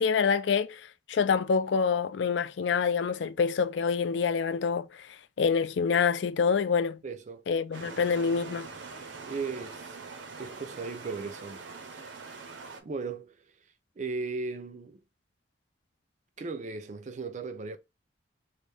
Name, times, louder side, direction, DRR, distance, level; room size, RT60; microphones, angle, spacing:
voice 1, 0.0-5.1 5.4-7.0 7.5-8.7, left 6 dB, 75° left, 0.4 m, -26 dB
voice 2, 7.0-7.4 9.3-10.0 10.4-11.7 12.8-13.4 14.0-15.0 16.4-17.8, right 4 dB, 40° right, 0.4 m, -36 dB
sound 1, 7.7-12.8, right 4 dB, 85° right, 0.7 m, -43 dB
3.2 x 2.5 x 3.4 m
head